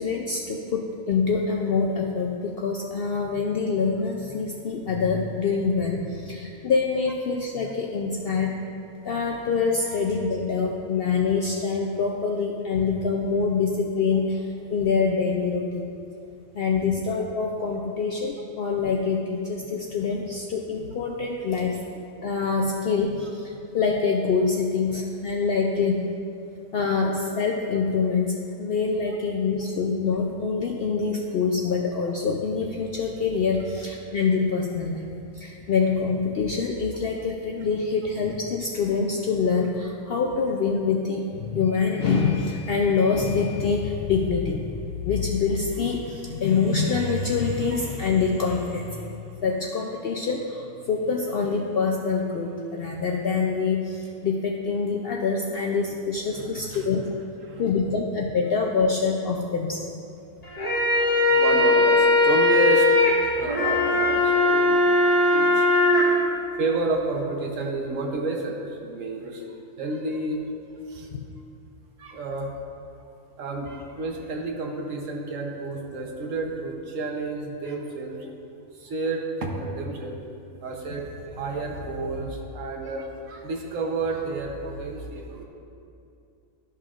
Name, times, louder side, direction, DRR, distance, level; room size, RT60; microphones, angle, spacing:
voice 1, 0.0-8.5 9.0-15.9 16.5-21.8 22.2-26.0 26.7-35.1 35.3-49.1 49.4-57.0 57.6-59.9 71.1-71.2, left 5 dB, 70° left, 0 dB, 0.5 m, -25 dB
voice 2, 56.3-56.9 57.4-57.6 60.9-64.8 65.3-65.7 65.9-69.4 69.8-70.4 70.9-71.1 72.0-72.5 73.0-73.1 73.4-78.3 78.7-80.2 80.6-85.4, right 3 dB, 65° right, 1 dB, 1.2 m, -30 dB
sound 1, 60.4-66.0, left 2 dB, 30° left, 1.4 m, -19 dB
12.5 x 5.6 x 2.4 m, 2.6 s
omnidirectional pair, 1.5 m